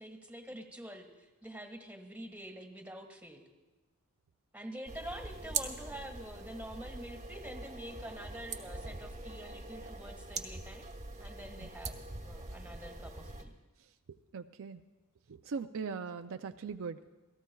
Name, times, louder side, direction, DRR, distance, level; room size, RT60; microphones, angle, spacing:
voice 1, 0.0-3.5 4.5-10.9 11.2-13.5, equal, 5° right, 4 dB, 1.6 m, -47 dB
sound 1, 4.9-13.4, right 4 dB, 30° right, 1.1 m, -42 dB
voice 2, 14.1-14.8 15.3-17.1, right 5 dB, 65° right, 8 dB, 0.5 m, -40 dB
28.0 x 18.0 x 2.3 m, 1.1 s
head